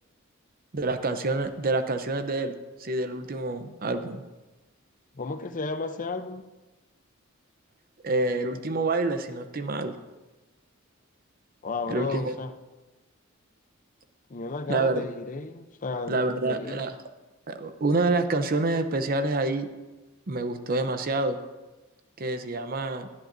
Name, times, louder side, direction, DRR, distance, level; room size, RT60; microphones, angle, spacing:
voice 1, 0.7-4.2 8.0-9.9 11.9-12.3 14.7-15.0 16.1-16.9 17.5-19.7 20.3-21.4 22.2-23.1, right 2 dB, 45° right, 9 dB, 0.7 m, -27 dB
voice 2, 5.1-6.5 11.6-12.5 14.3-16.9, left 3 dB, 40° left, 9 dB, 0.6 m, -33 dB
18.0 x 11.5 x 2.6 m, 1.1 s
head